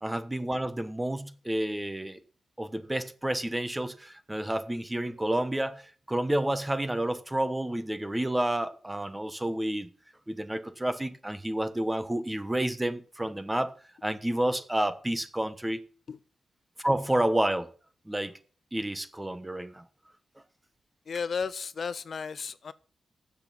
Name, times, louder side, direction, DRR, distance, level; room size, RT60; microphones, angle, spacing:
voice 1, 0.0-2.2 2.6-9.9 10.3-13.7 14.0-15.8 16.8-17.7 18.1-18.3 18.7-19.8, right 1 dB, 10° right, 1.1 m, -30 dB
voice 2, 21.1-22.7, left 5 dB, 60° left, 0.4 m, -33 dB
8.1 x 6.8 x 8.4 m
cardioid pair, 90°, 0 cm